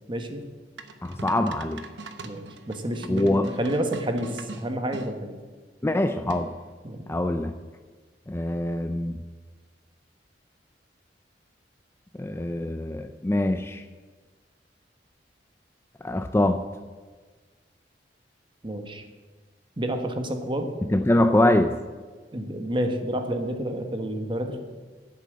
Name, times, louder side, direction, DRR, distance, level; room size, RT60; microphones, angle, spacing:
voice 1, 0.1-0.4 2.2-5.4 6.8-7.1 18.6-19.0 19.8-20.7 22.3-24.6, right 1 dB, 30° right, 6 dB, 1.3 m, -29 dB
sound 1, 0.8-5.1 6.3-6.7, right 3 dB, 85° right, 1.0 m, -41 dB
voice 2, 1.0-1.8 3.1-3.5 5.8-6.5 7.1-7.5 8.3-9.2 12.2-13.8 16.0-16.6 20.9-21.7, left 1 dB, 15° left, 8 dB, 0.4 m, -23 dB
11.0 x 8.3 x 7.6 m, 1.4 s
head